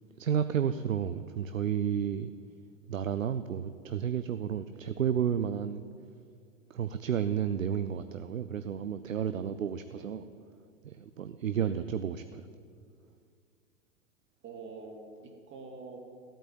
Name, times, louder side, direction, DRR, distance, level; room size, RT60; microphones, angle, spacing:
voice 1, 0.2-2.3 2.9-5.9 6.7-10.2 10.8-12.5, right 8 dB, 85° right, 11 dB, 0.7 m, -31 dB
voice 2, 14.4-16.0, right 4 dB, 30° right, 2 dB, 2.5 m, -46 dB
16.0 x 9.0 x 8.8 m, 2.2 s
figure-of-eight pair, 95°, 39 cm